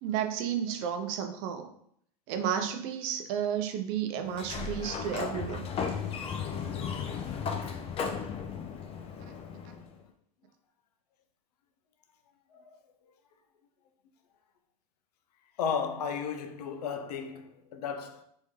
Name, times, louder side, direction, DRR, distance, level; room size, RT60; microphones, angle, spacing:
voice 1, 0.0-1.7 2.3-5.7, right 8 dB, 60° right, 0.6 m, -32 dB
Sliding door, 4.3-10.0, left 6 dB, 30° left, 0.5 m, -35 dB
voice 2, 15.6-18.2, left 6 dB, 90° left, 0.5 m, -35 dB
3.6 x 2.7 x 3.1 m
hypercardioid pair, 105°, 20 cm